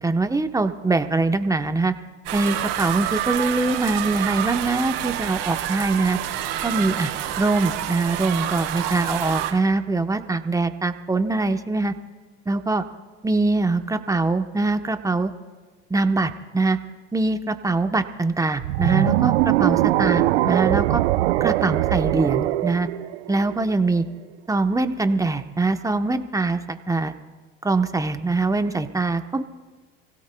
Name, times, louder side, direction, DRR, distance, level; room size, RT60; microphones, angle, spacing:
voice 1, 0.0-1.9 2.3-6.2 6.6-7.1 7.4-11.9 12.5-12.8 13.2-15.3 15.9-16.8 17.1-21.0 21.4-22.9 23.3-24.1 24.5-27.2 27.6-29.4, right 3 dB, 10° right, 8 dB, 0.9 m, -23 dB
sound 1, 2.2-9.5, right 11 dB, 70° right, 3.5 m, -28 dB
sound 2, 18.6-23.8, right 16 dB, 90° right, 0.6 m, -21 dB
29.5 x 16.5 x 2.3 m, 1.4 s
supercardioid pair, 90°, 31 cm